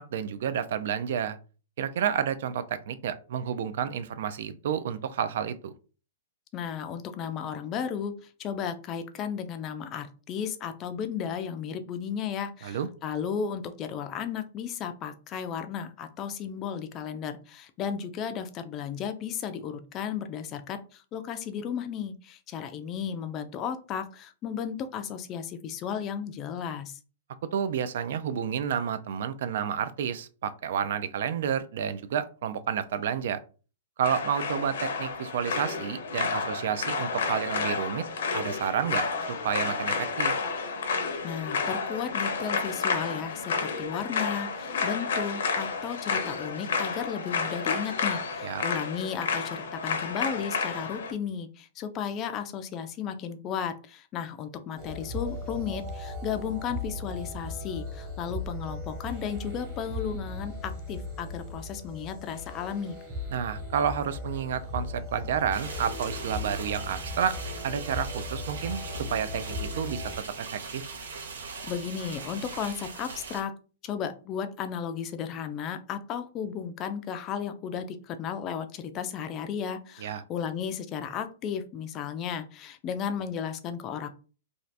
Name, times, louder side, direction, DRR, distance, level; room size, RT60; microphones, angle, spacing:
voice 1, 0.0-1.4 1.8-5.7 12.6-12.9 27.5-33.4 34.0-38.0 38.3-40.3 48.4-48.6 63.3-67.4 67.6-70.0 70.4-70.9 80.0-80.2, right 8 dB, 60° right, 13 dB, 0.4 m, -30 dB
voice 2, 6.5-27.0 41.2-63.0 71.6-73.5 73.8-84.1, left 7 dB, 25° left, 9 dB, 0.4 m, -34 dB
sound 1, 34.0-51.1, left 5 dB, 75° left, 0.7 m, -31 dB
sound 2, 54.8-70.2, left 2 dB, 25° right, 1.1 m, -37 dB
sound 3, 65.5-73.4, right 4 dB, 90° right, 0.8 m, -40 dB
2.6 x 2.4 x 3.3 m, 0.36 s
hypercardioid pair, 160°, 0 cm